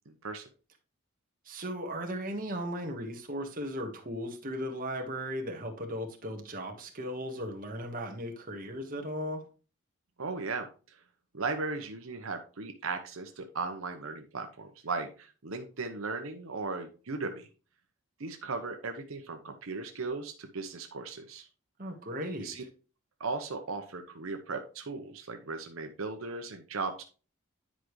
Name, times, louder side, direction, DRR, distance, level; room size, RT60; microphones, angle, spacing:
voice 1, 0.1-0.5 10.2-11.0 11.3-17.5 18.2-21.5 22.4-22.6 23.2-27.0, right 4 dB, 80° right, 5 dB, 0.9 m, -37 dB
voice 2, 1.4-9.4 21.8-22.5, equal, 40° right, 2 dB, 1.4 m, -36 dB
10.0 x 5.0 x 3.1 m, 0.35 s
head